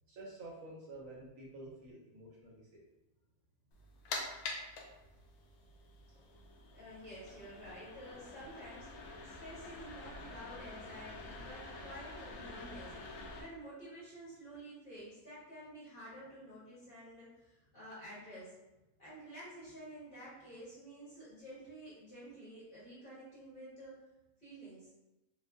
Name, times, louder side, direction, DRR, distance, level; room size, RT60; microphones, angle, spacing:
voice 1, 0.1-2.8, right 2 dB, 70° right, -3 dB, 1.0 m, -50 dB
sound 1, 3.7-13.4, left 3 dB, 80° left, 1.1 m, -47 dB
voice 2, 6.7-18.5 19.0-24.0 24.4-24.9, equal, 35° left, -10 dB, 1.4 m, -51 dB
3.6 x 2.4 x 2.4 m, 1.0 s
omnidirectional pair, 1.6 m